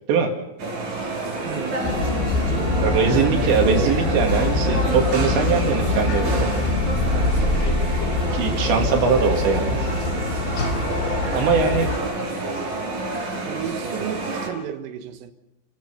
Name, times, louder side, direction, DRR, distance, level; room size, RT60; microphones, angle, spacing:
sound 1, 0.6-14.5, right 2 dB, 40° right, 5.6 m, -28 dB
voice 1, 1.4-1.9 2.6-3.8 8.8-8.9 13.4-15.3, right 9 dB, 90° right, 7 dB, 4.0 m, -34 dB
sound 2, 1.8-12.0, left 2 dB, 65° left, 5.0 m, -24 dB
voice 2, 2.8-6.5 8.3-9.8 11.3-11.9 12.2-12.4, right 6 dB, 65° right, 3 dB, 4.2 m, -21 dB
29.0 x 17.0 x 5.7 m, 0.93 s
omnidirectional pair, 5.7 m